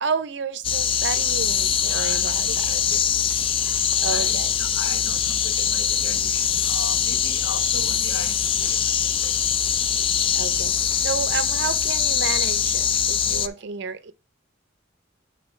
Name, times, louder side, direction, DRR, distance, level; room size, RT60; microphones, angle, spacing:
voice 1, 0.0-2.8 4.0-4.5 10.3-14.1, right 5 dB, 60° right, 0.5 m, -31 dB
sound 1, 0.6-13.5, left 8 dB, 30° left, 0.3 m, -23 dB
voice 2, 1.8-3.0 3.6-3.8 4.1-8.8 9.2-9.3 12.8-12.9 13.5-13.6, left 3 dB, 70° left, 1.0 m, -38 dB
9.4 x 4.1 x 3.2 m
head